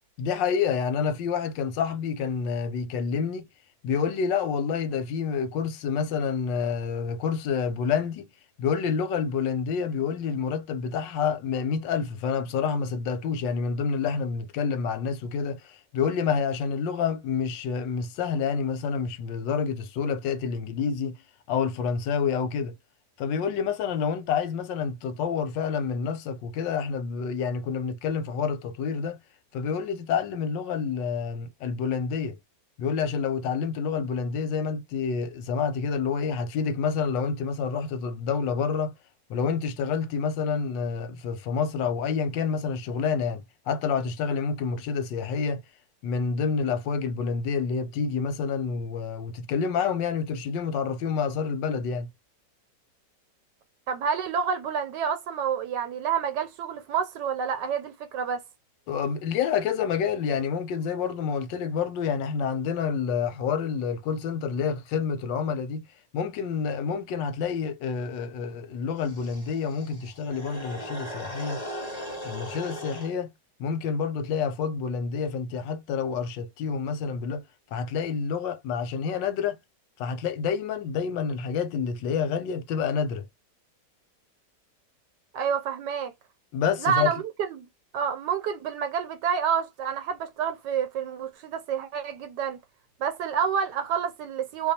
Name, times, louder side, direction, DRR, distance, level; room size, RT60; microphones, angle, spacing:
voice 1, 0.2-3.5 3.8-8.3 8.6-21.1 21.5-22.7 23.2-29.2 29.5-32.4 32.8-38.9 39.3-45.6 46.0-52.1 58.9-65.8 66.1-71.6 72.2-73.3 73.6-77.4 77.7-79.6 80.0-83.3 86.5-87.1, left 6 dB, 90° left, 1.4 m, -28 dB
voice 2, 53.9-58.4 85.3-86.1 86.8-87.7 87.9-92.6 93.0-94.7, right 7 dB, 75° right, 1.2 m, -28 dB
sound 1, 69.0-73.1, equal, 25° left, 1.1 m, -38 dB
2.9 x 2.3 x 4.0 m
omnidirectional pair, 1.9 m